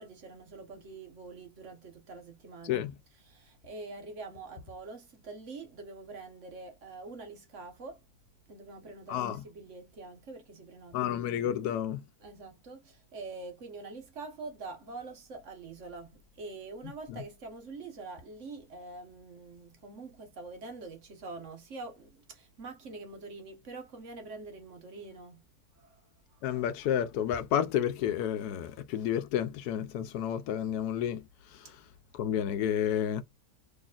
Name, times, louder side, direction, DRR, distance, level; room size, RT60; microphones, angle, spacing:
voice 1, 0.0-2.9 3.2-8.0 8.5-11.2 12.2-25.4 25.7-26.5 31.6-31.8, right 3 dB, 55° right, 1.2 m, -45 dB
voice 2, 9.1-9.4 10.9-12.0 26.4-31.3 31.5-31.7 32.1-33.2, left 10 dB, 80° left, 1.1 m, -30 dB
4.0 x 3.2 x 2.3 m
omnidirectional pair, 1.7 m